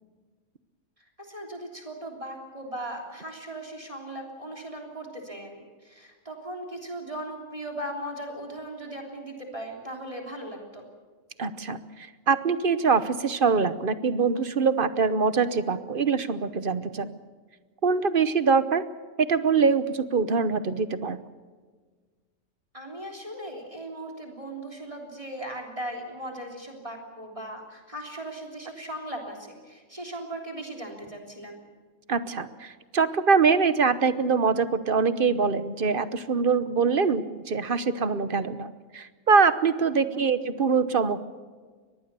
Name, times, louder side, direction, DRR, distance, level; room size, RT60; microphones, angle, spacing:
voice 1, 1.2-10.8 22.7-31.6 39.9-40.3, right 1 dB, 25° right, 1 dB, 3.5 m, -38 dB
voice 2, 11.4-11.8 12.3-17.1 17.8-18.8 19.3-21.2 32.1-41.2, right 5 dB, 45° right, 13 dB, 1.1 m, -24 dB
24.0 x 19.5 x 6.9 m, 1.5 s
omnidirectional pair, 1.4 m